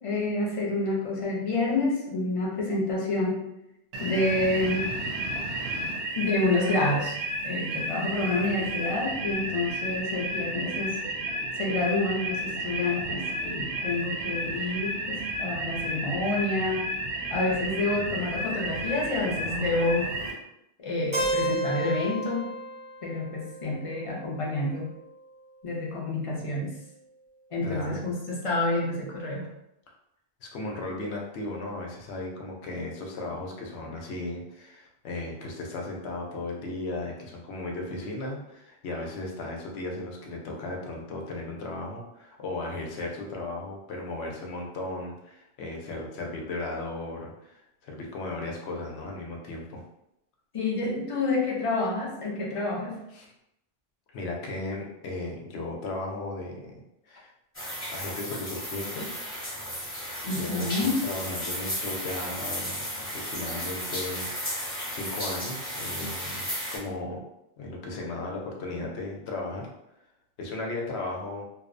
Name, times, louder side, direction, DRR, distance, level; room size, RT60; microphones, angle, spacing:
voice 1, 0.0-3.4 4.0-4.9 6.2-11.0 11.6-16.9 17.3-20.1 20.8-22.5 23.0-24.9 25.6-26.7 27.5-29.5 50.5-53.0 60.3-61.0, left 2 dB, 45° left, -3 dB, 0.5 m, -28 dB
sound 1, 3.9-20.3, right 1 dB, 80° right, 0.8 m, -32 dB
Keyboard (musical), 21.1-25.0, right 1 dB, 35° right, 0.5 m, -32 dB
voice 2, 27.6-28.0 30.4-49.8 53.1-53.3 54.1-56.8 57.1-57.3 57.9-59.1 60.2-67.2 67.6-69.7 70.4-71.4, left 2 dB, 90° left, 0 dB, 0.9 m, -36 dB
sound 2, 57.5-66.8, equal, 15° left, 0.9 m, -34 dB
2.6 x 2.0 x 2.5 m, 0.84 s
omnidirectional pair, 1.0 m